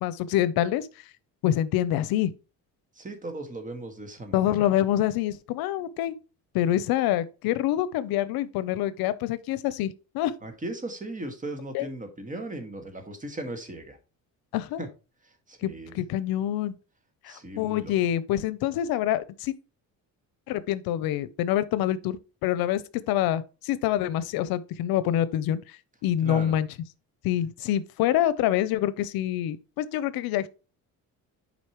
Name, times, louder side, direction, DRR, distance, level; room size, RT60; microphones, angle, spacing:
voice 1, 0.0-0.9 1.4-2.3 4.3-6.2 6.5-10.3 11.7-11.9 14.5-14.8 15.6-15.7 15.9-16.7 17.2-19.5 20.5-25.6 26.0-26.7 27.2-30.5, left 12 dB, 85° left, 0.6 m, -26 dB
voice 2, 3.0-4.6 10.4-14.0 14.8-14.9 15.2-16.0 17.3-18.0 26.2-26.6, right 2 dB, 20° right, 1.7 m, -37 dB
8.2 x 5.1 x 3.0 m
cardioid pair, 120°, 35 cm